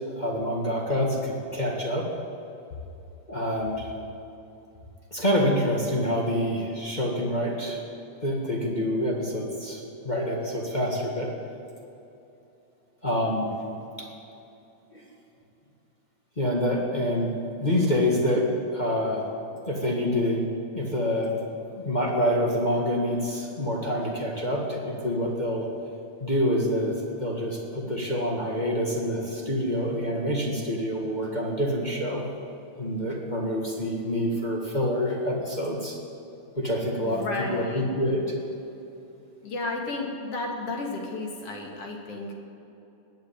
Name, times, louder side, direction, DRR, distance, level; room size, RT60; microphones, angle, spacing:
voice 1, 0.0-2.0 3.3-3.9 5.1-7.9 8.2-11.3 13.0-13.5 14.9-15.0 16.4-19.3 19.6-20.5 20.7-21.4 21.7-25.7 26.2-32.2 32.8-36.0 36.5-38.2, equal, 20° left, -2 dB, 1.3 m, -27 dB
voice 2, 37.0-37.9 39.4-42.3, left 2 dB, 55° left, 1 dB, 2.7 m, -33 dB
19.5 x 7.8 x 8.8 m, 2.9 s
omnidirectional pair, 3.5 m